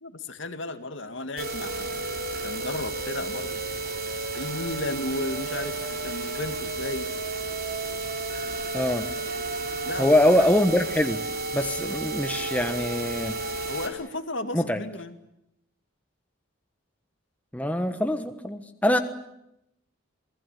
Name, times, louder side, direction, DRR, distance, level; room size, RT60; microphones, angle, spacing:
voice 1, 0.0-2.0 2.4-3.6 4.3-5.8 6.0-7.1 9.8-10.4 13.7-15.2, left 2 dB, 65° left, 8 dB, 2.2 m, -34 dB
sound 1, 1.4-13.9, right 3 dB, 45° right, 4.4 m, -32 dB
voice 2, 8.7-9.1 10.0-11.2 11.5-13.4 14.5-14.8 17.5-19.0, left 1 dB, 5° left, 7 dB, 1.3 m, -23 dB
27.5 x 20.0 x 8.5 m, 0.83 s
head